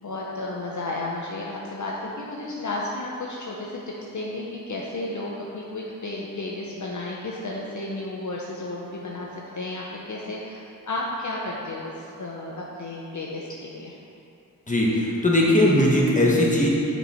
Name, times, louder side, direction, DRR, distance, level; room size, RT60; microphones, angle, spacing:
voice 1, 0.0-3.7 4.1-13.9, left 2 dB, 60° left, -3 dB, 0.8 m, -33 dB
voice 2, 14.7-16.7, left 1 dB, 20° left, -4 dB, 1.4 m, -19 dB
6.7 x 4.6 x 4.4 m, 2.6 s
cardioid pair, 55°, 34 cm